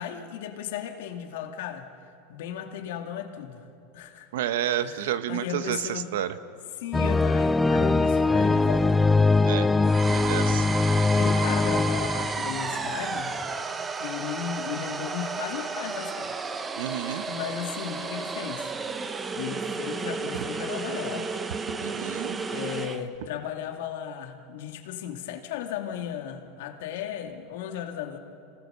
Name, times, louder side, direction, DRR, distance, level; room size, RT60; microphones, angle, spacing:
voice 1, 0.0-1.9 2.3-3.6 3.9-4.3 4.8-6.1 6.8-9.0 10.1-10.8 11.2-13.3 13.8-16.4 17.1-18.7 19.4-21.4 22.5-28.2, left 9 dB, 75° left, 5 dB, 2.2 m, -35 dB
voice 2, 4.3-6.3 9.4-9.7 10.0-10.6 16.8-17.2 21.8-22.4, right 11 dB, 80° right, 12 dB, 1.1 m, -30 dB
sound 1, 6.9-13.1 13.4-13.5, left 3 dB, 10° left, 0.5 m, -22 dB
sound 2, 9.8-23.0, right 4 dB, 20° right, 1.1 m, -32 dB
26.5 x 19.5 x 6.8 m, 2.6 s
supercardioid pair, 130°, 0 cm